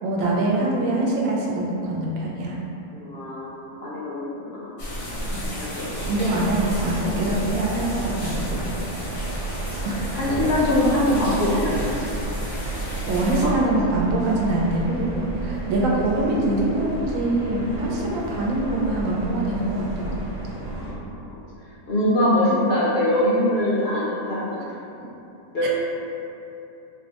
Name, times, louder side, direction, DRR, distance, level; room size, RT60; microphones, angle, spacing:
voice 1, 0.0-2.6 6.1-8.7 9.8-10.1 12.6-12.8 13.1-20.5 22.2-22.5 25.6-25.7, right 2 dB, 80° right, -3 dB, 1.0 m, -24 dB
voice 2, 2.9-4.7 5.4-6.1 8.5-8.6 10.1-12.1 13.4-13.5 17.7-17.9 20.5-21.4 21.9-24.6 25.5-25.7, left 1 dB, 60° left, -7 dB, 0.7 m, -23 dB
sound 1, 4.8-13.5, equal, 85° left, 1.4 m, -32 dB
sound 2, 5.9-20.9, right 2 dB, 60° right, 0.4 m, -32 dB
4.0 x 2.1 x 2.8 m, 2.9 s
omnidirectional pair, 1.4 m